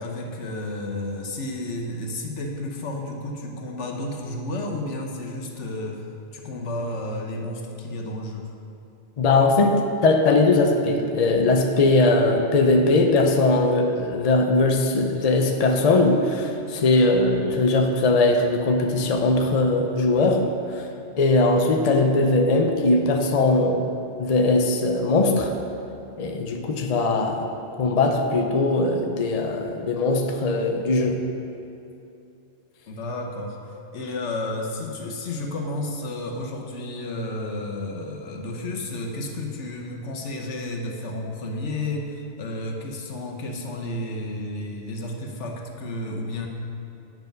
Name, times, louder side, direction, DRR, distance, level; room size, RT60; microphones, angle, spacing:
voice 1, 0.0-6.1 6.3-8.5 32.9-46.5, left 1 dB, 85° left, 1 dB, 1.3 m, -32 dB
voice 2, 9.2-20.5 20.7-20.9 21.2-23.8 24.2-25.5 26.2-27.5 27.8-31.2, left 2 dB, 40° left, 3 dB, 0.7 m, -20 dB
9.2 x 6.0 x 5.3 m, 2.7 s
omnidirectional pair, 1.2 m